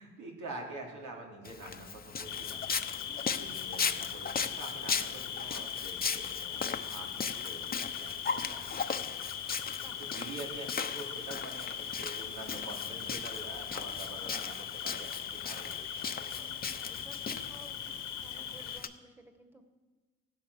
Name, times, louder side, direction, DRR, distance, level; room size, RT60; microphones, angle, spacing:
voice 1, 0.0-2.6 3.3-8.9 9.8-16.5 18.4-18.5, right 2 dB, 80° right, 0 dB, 3.4 m, -46 dB
Walk footsteps, 1.4-18.9, left 6 dB, 30° left, 0.8 m, -38 dB
Cricket, 2.2-18.8, left 9 dB, 90° left, 1.4 m, -40 dB
voice 2, 3.0-3.4 8.7-9.1 9.7-10.0 13.7-14.1 16.3-19.6, right 1 dB, 5° right, 5 dB, 1.8 m, -56 dB
15.5 x 12.5 x 6.5 m, 1.3 s
cardioid pair, 90°, 30 cm